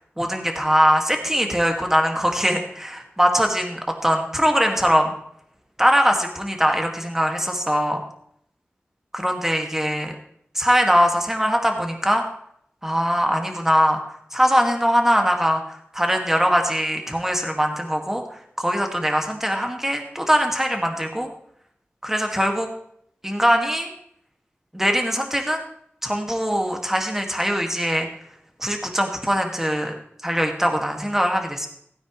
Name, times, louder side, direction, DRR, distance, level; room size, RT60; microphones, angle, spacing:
voice 1, 0.0-5.2 5.8-8.0 9.1-10.2 10.5-12.2 12.8-21.3 22.0-22.7 23.2-23.9 24.7-25.6 26.0-28.1 28.6-29.9 30.2-31.7, equal, 10° right, 3 dB, 2.1 m, -21 dB
16.0 x 9.3 x 3.2 m, 0.70 s
wide cardioid pair, 55°, 4 cm